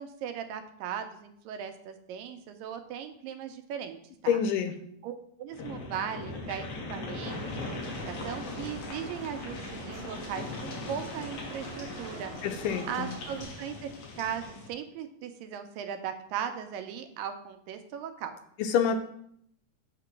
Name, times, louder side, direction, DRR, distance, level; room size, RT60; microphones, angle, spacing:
voice 1, 0.0-4.4 5.0-5.1 5.4-12.3 12.9-13.9 14.2-18.4, right 8 dB, 90° right, 7 dB, 2.3 m, -38 dB
voice 2, 4.3-4.7 12.4-13.2 18.6-19.0, left 7 dB, 80° left, 7 dB, 2.0 m, -27 dB
sound 1, 5.5-14.7, left 3 dB, 60° left, 1.7 m, -40 dB
sound 2, 7.3-13.4, right 4 dB, 65° right, 1.2 m, -46 dB
8.3 x 3.0 x 5.8 m, 0.69 s
omnidirectional pair, 3.9 m